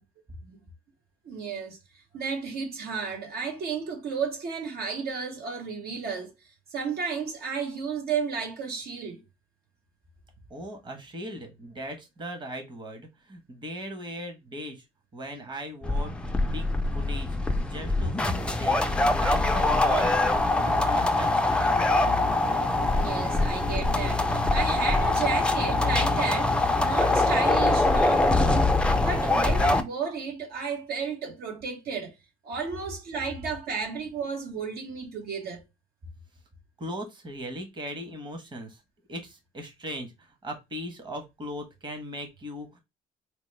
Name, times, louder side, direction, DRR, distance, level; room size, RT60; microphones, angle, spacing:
voice 1, 1.2-1.8 2.1-6.3 6.7-9.2 22.9-32.1 32.4-35.6, right 5 dB, 65° right, 1.0 m, -33 dB
voice 2, 10.5-14.8 15.1-18.8 19.1-21.8 36.8-38.8 39.1-42.8, right 1 dB, 25° right, 1.1 m, -39 dB
sound 1, 15.8-29.8, left 2 dB, 5° left, 0.4 m, -23 dB
4.6 x 2.1 x 3.2 m
cardioid pair, 110°, 17 cm